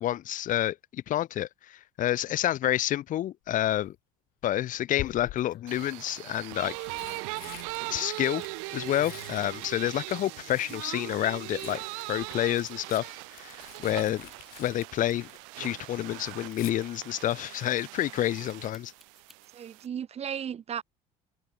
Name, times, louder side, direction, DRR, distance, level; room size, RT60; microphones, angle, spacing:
voice 1, 0.0-4.0 4.4-6.8 7.9-8.4 8.7-11.8 12.1-14.3 14.6-15.3 15.6-18.9, left 13 dB, 55° left, 1.0 m, -29 dB
Tearing, 3.5-3.9 4.9-5.7 6.5-11.0 11.3-15.6 15.9-16.7 18.6-18.9 19.2-19.3, left 19 dB, 70° left, 1.2 m, -46 dB
sound 1, 5.4-5.8 6.1-6.4 8.4-10.7 11.1-19.5, equal, ahead, 6.5 m, -63 dB
sound 2, 5.7-19.9, right 38 dB, 85° right, 1.4 m, -40 dB
voice 2, 19.5-20.8, right 8 dB, 40° right, 1.1 m, -36 dB
supercardioid pair, 85°, 16 cm